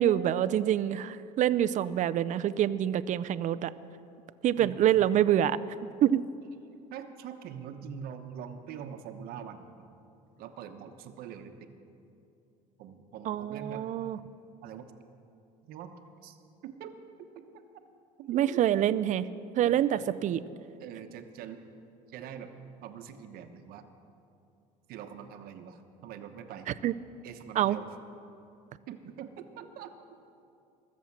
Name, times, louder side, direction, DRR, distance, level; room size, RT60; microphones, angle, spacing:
voice 1, 0.0-3.7 4.4-5.6 6.0-6.2 13.3-14.2 18.3-19.2 19.5-20.4 26.8-26.9 27.6-27.8, right 11 dB, 50° right, 14 dB, 0.5 m, -26 dB
voice 2, 6.9-9.8 10.4-11.7 12.8-13.8 14.6-14.9 15.6-15.9 16.2-16.4 16.6-17.5 18.2-18.8 19.6-20.0 20.8-21.6 22.1-22.5 22.8-23.9 24.9-26.7 27.2-27.9 28.9-29.9, right 8 dB, 70° right, 7 dB, 1.1 m, -44 dB
21.0 x 7.4 x 7.3 m, 2.7 s
cardioid pair, 105°, 16 cm